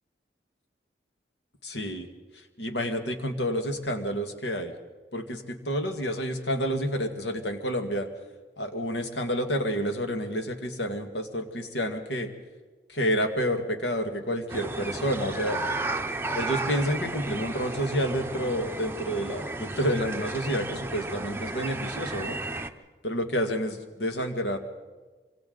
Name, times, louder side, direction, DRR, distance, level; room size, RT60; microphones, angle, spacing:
voice 1, 1.6-2.1 2.6-4.7 5.1-8.1 8.6-12.3 12.9-15.6 16.3-22.4 23.0-24.6, equal, 80° left, 5 dB, 2.0 m, -29 dB
sound 1, 14.5-22.7, right 2 dB, 15° right, 0.7 m, -33 dB
26.0 x 25.0 x 4.0 m, 1.3 s
head